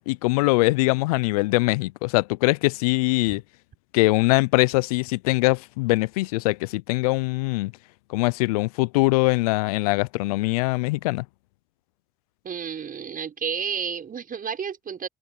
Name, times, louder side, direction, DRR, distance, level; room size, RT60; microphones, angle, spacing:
voice 1, 0.1-3.4 3.9-7.7 8.1-11.2, left 23 dB, 90° left, 0.4 m, -22 dB
voice 2, 12.4-15.1, right 7 dB, 50° right, 6.1 m, -31 dB
hypercardioid pair, 50°, 18 cm